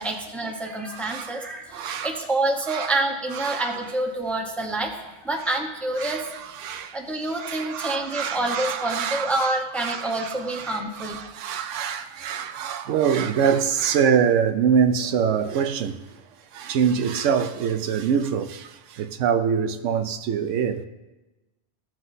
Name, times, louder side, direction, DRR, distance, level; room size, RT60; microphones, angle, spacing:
voice 1, 0.0-4.9 5.2-6.3 6.9-11.2, right 2 dB, ahead, 0.8 m, -27 dB
voice 2, 0.9-1.4 1.7-2.2 2.7-3.0 3.3-3.8 6.0-7.0 7.3-16.2 16.5-20.9, right 7 dB, 85° right, 0.9 m, -25 dB
16.0 x 5.9 x 2.7 m
omnidirectional pair, 1.2 m